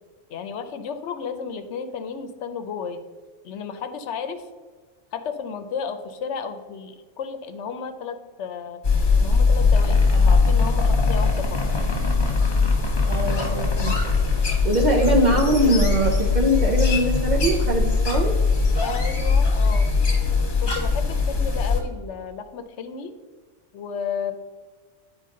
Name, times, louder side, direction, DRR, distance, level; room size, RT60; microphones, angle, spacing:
voice 1, 0.3-3.0 3.4-4.5 5.1-8.8 9.2-11.6 18.8-19.9 20.6-23.1 23.7-24.3, left 6 dB, 75° left, 9 dB, 0.9 m, -33 dB
sound 1, 8.8-21.8, left 4 dB, 45° left, 1.1 m, -20 dB
voice 2, 13.0-14.0 14.3-18.3, right 1 dB, 45° right, -1 dB, 0.7 m, -22 dB
9.2 x 4.6 x 3.7 m, 1.4 s
omnidirectional pair, 1.2 m